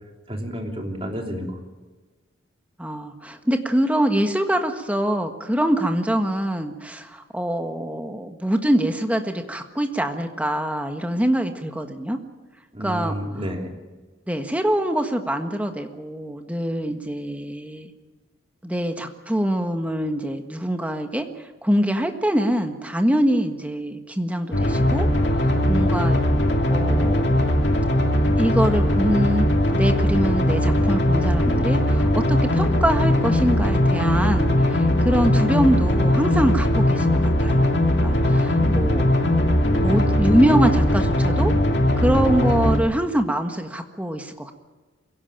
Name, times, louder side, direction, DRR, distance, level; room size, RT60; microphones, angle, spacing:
voice 1, 0.3-1.6 12.7-13.7 38.6-39.0 39.7-40.1, equal, 30° right, 2 dB, 3.0 m, -30 dB
voice 2, 2.8-12.2 12.8-13.1 14.3-17.9 18.6-21.3 21.6-26.2 26.7-27.5 28.4-37.7 38.0-39.0 39.8-41.5 42.0-44.5, right 1 dB, 5° right, 5 dB, 1.5 m, -24 dB
sound 1, 24.5-42.8, left 1 dB, 60° left, 2.5 m, -20 dB
23.5 x 17.0 x 9.0 m, 1.3 s
head